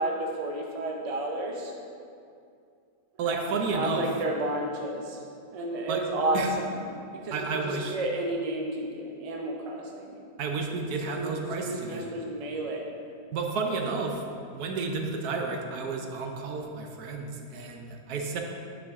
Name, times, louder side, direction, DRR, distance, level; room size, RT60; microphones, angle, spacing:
voice 1, 0.0-1.7 3.2-5.2 5.5-6.9 7.1-10.2 10.7-11.4 11.6-12.9 13.7-13.8, right 1 dB, 50° right, 0 dB, 0.4 m, -32 dB
voice 2, 3.2-4.1 5.9-6.0 6.3-6.5 7.3-8.0 10.4-12.0 13.3-14.1 14.5-18.4, right 4 dB, 70° right, 2 dB, 1.1 m, -31 dB
9.7 x 4.8 x 3.6 m, 2.4 s
omnidirectional pair, 1.9 m